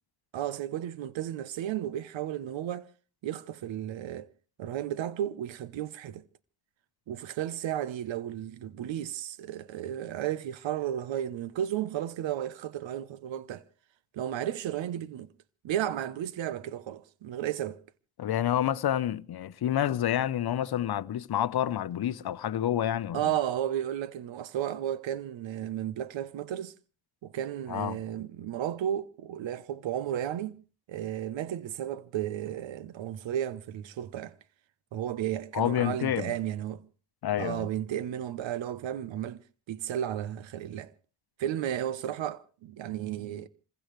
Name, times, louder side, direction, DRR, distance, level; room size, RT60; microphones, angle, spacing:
voice 1, 0.3-2.9 3.2-4.3 4.6-6.2 7.1-13.6 14.1-15.3 15.6-17.8 23.1-26.7 27.2-30.6 30.9-34.3 34.9-36.9 37.4-39.4 39.7-40.9 41.4-43.5, right 11 dB, 80° right, 1.0 m, -33 dB
voice 2, 18.2-23.2 27.7-28.0 35.5-36.3 37.2-37.7, left 11 dB, 55° left, 0.9 m, -28 dB
28.0 x 15.5 x 3.2 m
cardioid pair, 80°, 45 cm